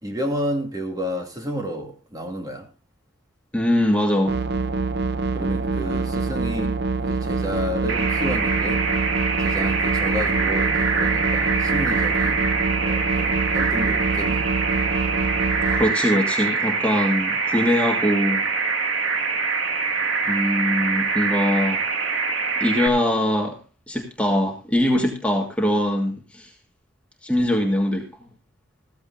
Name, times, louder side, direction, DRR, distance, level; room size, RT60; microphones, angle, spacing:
voice 1, 0.0-2.7 5.3-8.8 9.4-12.5 12.8-14.5, equal, 20° right, 2.4 m, -31 dB
voice 2, 3.5-4.4 15.7-18.4 20.3-21.8 22.6-23.6 23.9-26.5 27.2-28.1, left 1 dB, 5° left, 1.7 m, -22 dB
sound 1, 4.3-15.8, right 3 dB, 60° right, 0.7 m, -25 dB
sound 2, 7.9-22.9, right 4 dB, 90° right, 2.2 m, -24 dB
14.5 x 14.5 x 2.6 m
head